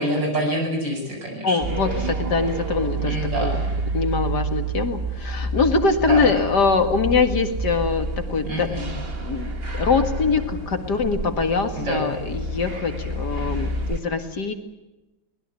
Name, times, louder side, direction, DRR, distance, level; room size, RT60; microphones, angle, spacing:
voice 1, 0.0-1.6 1.9-2.1 3.0-3.6 6.1-6.3 8.4-8.9 11.7-12.0, right 1 dB, 65° right, 1 dB, 8.8 m, -26 dB
voice 2, 1.4-1.9 2.2-3.1 3.4-3.5 3.9-8.8 9.2-14.5, left 4 dB, 55° left, 7 dB, 2.5 m, -23 dB
sound 1, 1.6-14.0, right 2 dB, 30° right, 2.1 m, -29 dB
23.0 x 20.5 x 8.4 m, 1.0 s
omnidirectional pair, 2.1 m